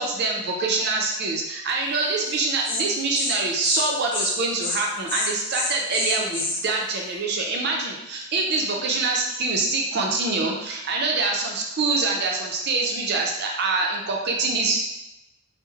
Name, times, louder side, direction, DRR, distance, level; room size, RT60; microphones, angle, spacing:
voice 1, 0.0-14.8, right 3 dB, 50° right, 0 dB, 0.5 m, -25 dB
Insect, 2.3-2.4 2.6-2.8 3.1-3.4 3.6-3.8 4.1-4.3 4.6-4.8 5.1-6.6, left 2 dB, 25° left, 0.3 m, -27 dB
3.0 x 2.0 x 2.3 m, 0.92 s
head